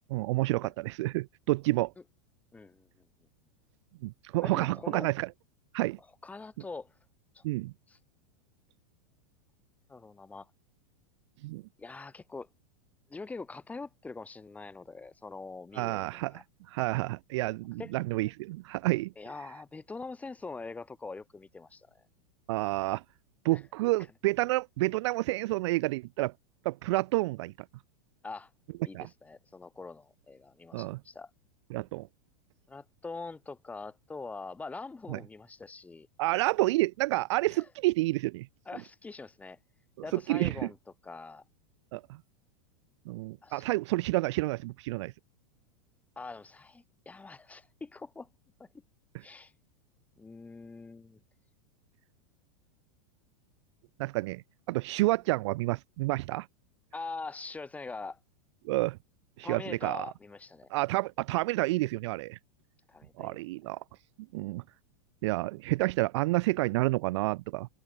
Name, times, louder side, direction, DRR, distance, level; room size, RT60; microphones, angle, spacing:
voice 1, 0.1-1.9 4.0-5.3 5.7-6.0 7.4-7.7 11.4-11.6 15.8-16.3 16.7-19.1 22.5-23.0 23.4-26.3 26.6-27.5 28.9-29.1 30.7-31.0 31.7-32.1 35.1-35.2 36.2-38.5 40.1-40.5 41.9-42.0 43.1-45.1 54.0-56.5 58.6-59.0 59.4-60.1 60.7-62.4 63.2-63.8 64.3-64.6 65.2-67.7, right 20 dB, 55° right, 0.4 m, -29 dB
voice 2, 2.5-3.1 4.4-5.1 6.2-6.9 7.3-7.4 7.9-8.0 9.9-10.5 11.8-12.5 13.1-16.4 17.8-17.9 19.2-22.0 23.5-23.6 28.2-28.5 28.8-31.3 32.7-36.1 37.5-37.7 38.7-39.6 40.0-40.8 41.0-41.4 43.4-43.7 46.2-48.3 48.6-48.7 49.2-49.5 50.2-51.2 56.9-58.2 59.4-60.7 62.9-63.4, left 3 dB, 10° left, 2.2 m, -43 dB
supercardioid pair, 155°, 18 cm